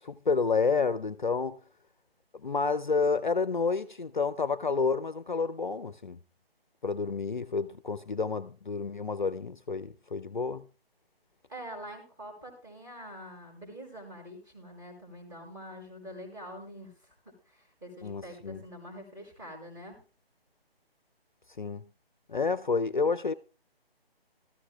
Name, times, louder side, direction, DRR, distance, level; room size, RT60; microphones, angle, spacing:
voice 1, 0.0-1.6 2.4-6.2 6.8-10.6 18.0-18.6 21.6-21.8 22.3-23.3, left 4 dB, 50° left, 0.6 m, -29 dB
voice 2, 11.5-20.0, equal, 20° right, 4.8 m, -45 dB
17.0 x 13.5 x 2.3 m
figure-of-eight pair, 150°, 31 cm